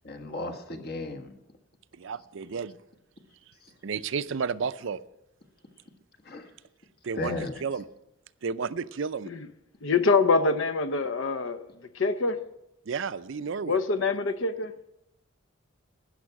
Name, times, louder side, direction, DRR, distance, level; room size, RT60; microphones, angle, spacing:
voice 1, 0.0-1.3 6.3-6.4 7.2-7.5, left 2 dB, 50° left, 1.5 m, -34 dB
voice 2, 2.0-2.8 3.8-5.0 7.0-7.9 8.4-9.3 12.9-13.8, right 5 dB, 65° right, 0.5 m, -32 dB
voice 3, 9.8-11.7 11.9-12.4 13.6-14.7, left 4 dB, 70° left, 0.7 m, -25 dB
12.5 x 9.6 x 5.9 m
head